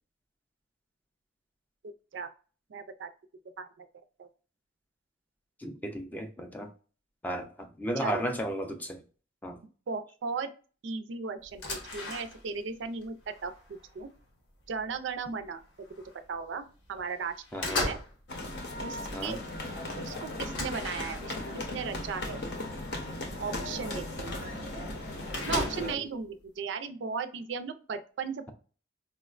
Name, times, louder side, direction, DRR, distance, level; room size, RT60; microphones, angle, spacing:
voice 1, 1.8-2.3 2.7-3.1 3.6-3.9 4.2-4.3 8.0-8.2 9.9-10.5 10.8-14.1 14.7-15.9 16.3-17.3 17.6-18.0 18.8-19.4 20.0-21.3 21.7-22.4 23.4-24.4 25.5-28.5, right 5 dB, 75° right, 0.4 m, -36 dB
voice 2, 5.6-6.7 7.2-9.0 9.4-9.6 17.5-17.9 19.1-19.4 25.5-25.9, equal, 10° left, 0.3 m, -34 dB
sound 1, 11.4-12.7 13.0-14.2 14.8-15.0 15.3-16.2 16.6-17.0 17.3-18.2 18.5-19.0 19.4-19.5 19.8-19.9 20.5-21.6 22.4-22.5 23.0-23.1 24.2-24.3 24.5-24.6 24.8-26.1, left 2 dB, 80° left, 1.0 m, -37 dB
sound 2, 18.3-25.9, left 1 dB, 60° left, 0.7 m, -37 dB
4.3 x 2.1 x 2.4 m
head